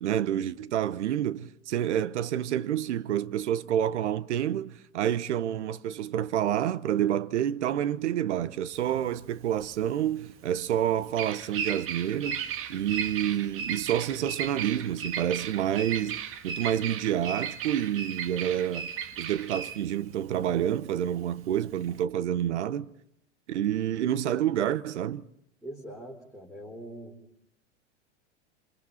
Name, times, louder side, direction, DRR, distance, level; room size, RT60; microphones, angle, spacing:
voice 1, 0.0-12.4 12.7-18.9 19.2-22.9 23.5-25.2, right 10 dB, 70° right, 0.9 m, -28 dB
Bird vocalization bird call bird song, 8.8-22.0, right 7 dB, 35° right, 1.6 m, -36 dB
voice 2, 25.6-27.2, right 1 dB, ahead, 4.4 m, -42 dB
27.5 x 25.5 x 4.2 m
hypercardioid pair, 95°, 36 cm